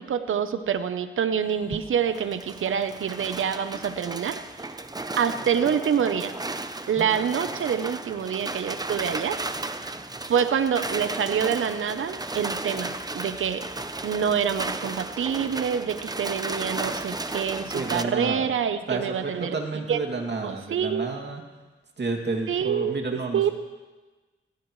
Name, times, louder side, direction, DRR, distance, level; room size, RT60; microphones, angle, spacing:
voice 1, 0.0-4.4 5.2-6.3 6.9-9.4 10.2-13.6 14.0-19.6 19.9-20.0 20.4-21.1 22.5-23.0 23.3-23.5, right 8 dB, 75° right, 10 dB, 0.9 m, -26 dB
sound 1, 1.4-18.0, right 2 dB, 20° right, 0.8 m, -34 dB
voice 2, 17.6-18.5 18.9-21.4 22.0-23.5, right 3 dB, 55° right, 2 dB, 2.6 m, -30 dB
20.0 x 16.5 x 3.2 m, 1.2 s
cardioid pair, 65°, 21 cm